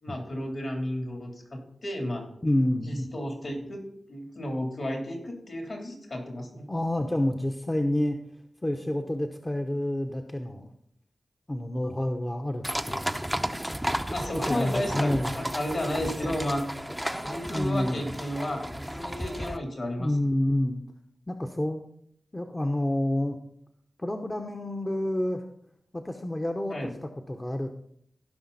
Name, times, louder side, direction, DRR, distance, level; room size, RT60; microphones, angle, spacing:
voice 1, 0.0-2.3 2.8-3.8 4.1-6.7 14.1-16.6 17.2-20.3 26.7-26.9, left 1 dB, 60° left, 1 dB, 3.5 m, -33 dB
voice 2, 2.4-3.1 6.7-8.2 8.6-10.7 11.5-13.2 14.5-15.3 17.5-18.0 20.0-20.8 21.3-21.8 22.3-23.4 24.0-25.4 25.9-27.7, left 1 dB, 20° left, 4 dB, 0.9 m, -28 dB
sound 1, 12.6-19.6, equal, 5° right, 0.7 m, -33 dB
16.0 x 5.7 x 4.1 m, 0.69 s
cardioid pair, 50°, 0 cm